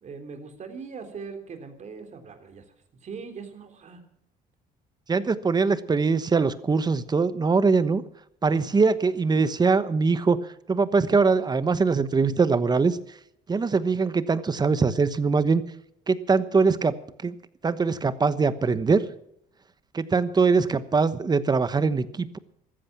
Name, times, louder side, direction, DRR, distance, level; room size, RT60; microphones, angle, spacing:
voice 1, 0.0-2.6 2.9-4.0 8.5-8.8, right 5 dB, 45° right, 6 dB, 3.5 m, -41 dB
voice 2, 5.1-8.0 8.4-10.4 10.7-13.0 13.5-15.6 16.1-16.9 17.2-17.3 17.6-19.0 19.9-22.4, right 4 dB, 25° right, 14 dB, 1.1 m, -22 dB
14.5 x 14.0 x 6.0 m, 0.74 s
cardioid pair, 110°, 17 cm